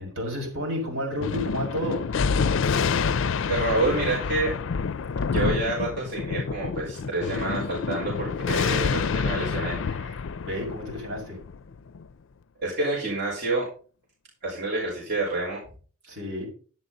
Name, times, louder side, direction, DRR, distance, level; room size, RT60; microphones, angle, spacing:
voice 1, 0.0-2.0 10.4-11.4 16.1-16.5, left 1 dB, 70° right, 0 dB, 6.0 m, -31 dB
Thunder, 1.2-12.0, left 5 dB, 60° left, 0.4 m, -28 dB
voice 2, 3.5-4.5 5.3-10.2 12.6-13.7 14.4-15.6, right 2 dB, 50° right, -4 dB, 4.6 m, -28 dB
11.0 x 10.5 x 4.0 m, 0.40 s
head